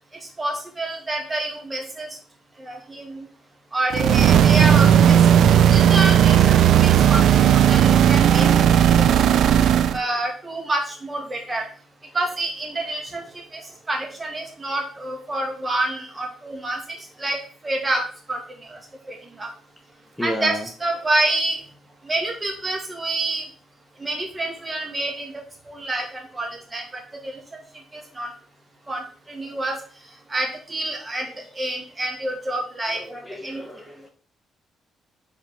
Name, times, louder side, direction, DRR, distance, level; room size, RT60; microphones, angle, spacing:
voice 1, 0.4-2.1 2.6-3.3 3.7-6.6 6.8-8.5 9.0-9.1 9.9-11.7 12.1-13.2 13.5-13.6 13.9-16.8 17.2-17.4 17.6-18.0 18.3-18.4 18.7-18.8 19.1-19.5 20.2-21.6 22.0-23.4 24.0-25.3 25.7-27.4 27.9-28.3 28.9-29.8 30.3-31.3 31.5-33.0 33.4-33.6, right 2 dB, 20° right, 1 dB, 2.2 m, -27 dB
sound 1, 3.9-10.0, right 9 dB, 70° right, 0.4 m, -15 dB
voice 2, 9.5-10.0 20.2-20.7 32.9-34.1, left 1 dB, 5° left, 3 dB, 0.9 m, -33 dB
5.1 x 4.4 x 5.1 m, 0.41 s
cardioid pair, 90°, 0 cm